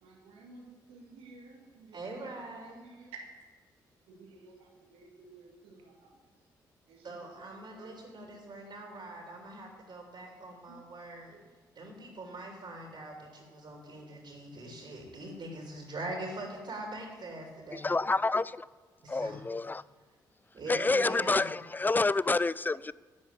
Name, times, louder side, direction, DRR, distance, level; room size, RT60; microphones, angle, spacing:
voice 1, 0.0-2.0 2.8-3.2 4.1-5.9 6.9-7.3 7.7-7.9 11.3-11.4, right 4 dB, 75° right, 1.9 m, -53 dB
voice 2, 1.9-3.0 7.0-11.4 11.7-17.9 19.0-19.4 20.5-21.5, right 2 dB, 50° right, 3.1 m, -43 dB
voice 3, 17.7-18.7 19.1-19.8 20.7-22.9, left 3 dB, 20° left, 0.4 m, -28 dB
10.5 x 9.2 x 7.5 m
hypercardioid pair, 45°, 10 cm